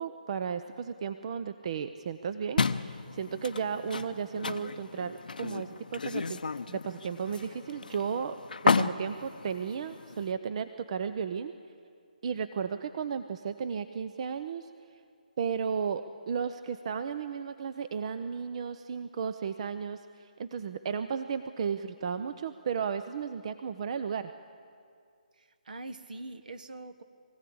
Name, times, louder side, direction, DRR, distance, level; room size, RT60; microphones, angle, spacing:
voice 1, 0.0-6.4 6.7-8.4 8.6-11.5 12.2-14.7 15.4-24.3, right 6 dB, 45° right, 11 dB, 0.6 m, -34 dB
sound 1, 2.6-10.3, left 4 dB, 75° left, 0.7 m, -33 dB
voice 2, 25.4-27.0, right 2 dB, 70° right, 10 dB, 1.4 m, -43 dB
23.0 x 16.5 x 8.6 m, 2.3 s
figure-of-eight pair, 150°, 5 cm